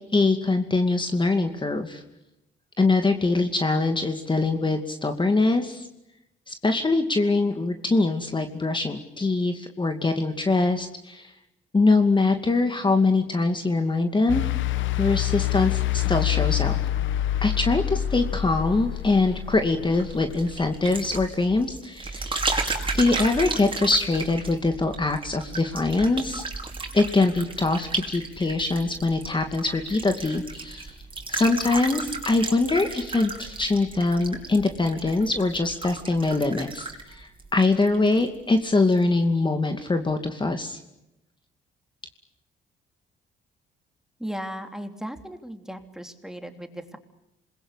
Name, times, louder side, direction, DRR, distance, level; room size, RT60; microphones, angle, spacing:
voice 1, 0.1-2.0 2.8-5.9 6.5-11.3 11.7-14.4 15.0-16.7 17.4-22.4 22.9-26.4 26.9-31.0 31.3-40.8, left 3 dB, 25° left, 6 dB, 2.4 m, -23 dB
sound 1, 14.3-21.4, left 13 dB, 75° left, 1.2 m, -27 dB
sound 2, 19.9-38.3 38.6-39.0, right 3 dB, 25° right, 5.4 m, -34 dB
voice 2, 44.2-47.0, equal, ahead, 6 dB, 3.3 m, -36 dB
27.0 x 21.5 x 9.9 m, 0.89 s
cardioid pair, 90°, 20 cm